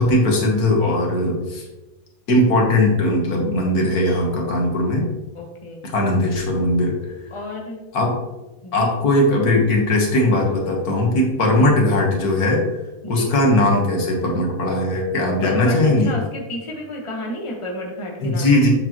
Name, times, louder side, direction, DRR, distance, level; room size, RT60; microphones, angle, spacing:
voice 1, 0.0-1.6 2.3-5.1 5.9-7.0 7.9-8.1 8.7-12.6 13.1-16.1 18.2-18.7, left 1 dB, 75° left, 0 dB, 1.9 m, -19 dB
voice 2, 5.3-5.8 7.3-7.8 8.6-8.9 11.5-11.7 13.0-13.3 15.4-18.7, left 1 dB, 20° left, -1 dB, 1.2 m, -31 dB
7.6 x 6.6 x 3.0 m, 1.0 s
omnidirectional pair, 1.6 m